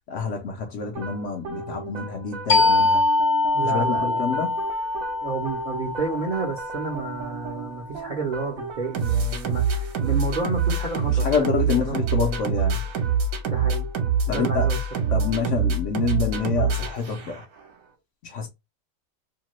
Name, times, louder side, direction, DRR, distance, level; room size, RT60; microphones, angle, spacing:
voice 1, 0.1-3.0 3.7-4.6 11.2-12.8 14.3-14.7 15.1-17.4 18.2-18.5, left 5 dB, 65° left, 0.8 m, -27 dB
sound 1, 1.0-17.6, right 5 dB, 65° right, 1.1 m, -27 dB
sound 2, 2.5-7.8, left 3 dB, 35° left, 0.6 m, -24 dB
voice 2, 3.5-4.4 5.2-12.0 13.4-13.9 14.3-14.8, right 3 dB, 45° right, 0.6 m, -30 dB
2.8 x 2.3 x 2.9 m
omnidirectional pair, 1.6 m